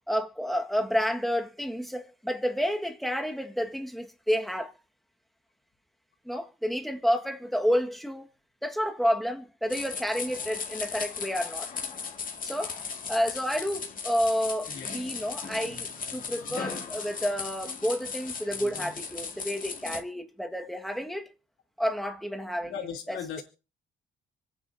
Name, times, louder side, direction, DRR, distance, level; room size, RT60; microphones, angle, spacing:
voice 1, 0.1-4.7 6.2-8.3 8.6-11.7 12.4-12.8 13.1-21.3 21.8-22.7 23.1-23.4, equal, ahead, 1.7 m, -30 dB
sound 1, 9.7-20.0, left 5 dB, 45° left, 2.2 m, -37 dB
voice 2, 22.6-23.4, left 7 dB, 90° left, 3.2 m, -37 dB
26.0 x 9.5 x 2.7 m
cardioid pair, 90°, 20 cm